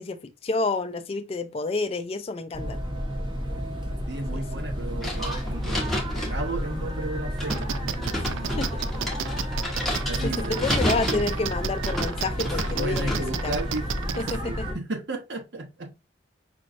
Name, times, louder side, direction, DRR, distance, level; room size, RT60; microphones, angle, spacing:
voice 1, 0.0-2.8 4.3-4.6 8.1-8.3 8.6-9.1 10.2-13.1 13.4-13.5 14.2-14.7, left 3 dB, 30° left, 0.3 m, -29 dB
sound 1, 2.5-14.7, equal, 25° right, 0.9 m, -31 dB
voice 2, 4.1-8.6 10.1-10.6 10.9-11.1 12.4-13.9 14.1-15.9, right 2 dB, 65° right, 1.0 m, -34 dB
sound 2, 5.0-14.2, left 1 dB, ahead, 0.8 m, -32 dB
sound 3, 7.5-14.4, right 8 dB, 90° right, 0.4 m, -31 dB
5.1 x 3.0 x 2.5 m
head